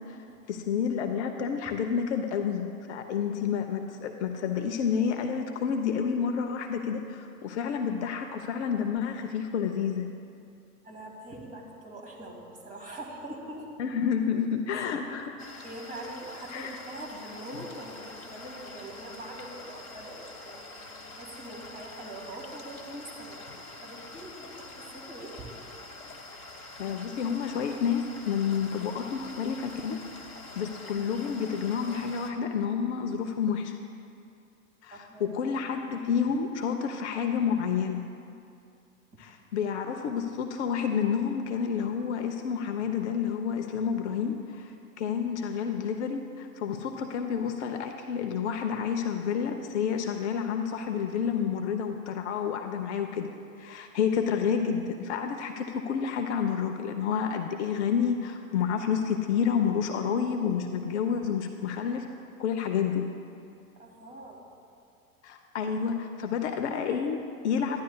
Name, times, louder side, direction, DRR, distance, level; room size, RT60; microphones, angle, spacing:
voice 1, 0.5-10.1 13.8-15.4 16.5-16.8 26.8-30.0 30.6-33.7 34.8-38.0 39.2-53.3 53.6-62.0 62.4-63.0 65.2-67.8, left 7 dB, 50° left, 5 dB, 0.6 m, -29 dB
voice 2, 10.8-13.7 14.7-14.9 15.6-25.5 34.9-35.3 63.8-64.4, right 1 dB, 20° right, -2 dB, 1.8 m, -43 dB
sound 1, 15.4-32.3, left 2 dB, 90° left, 1.0 m, -45 dB
13.0 x 10.5 x 2.2 m, 2.5 s
figure-of-eight pair, 90°, 43 cm